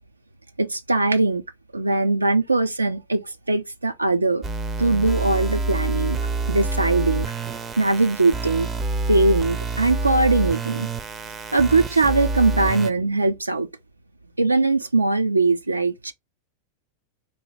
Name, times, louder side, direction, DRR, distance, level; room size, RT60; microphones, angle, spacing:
voice 1, 0.6-1.4 1.7-4.4 4.8-6.2 6.5-7.3 7.8-8.7 9.1-10.9 11.5-13.7 14.4-16.1, right 3 dB, 80° right, 0.3 m, -21 dB
sound 1, 4.4-12.9, right 3 dB, 20° right, 0.4 m, -27 dB
3.9 x 2.6 x 3.0 m
figure-of-eight pair, 90°, 0 cm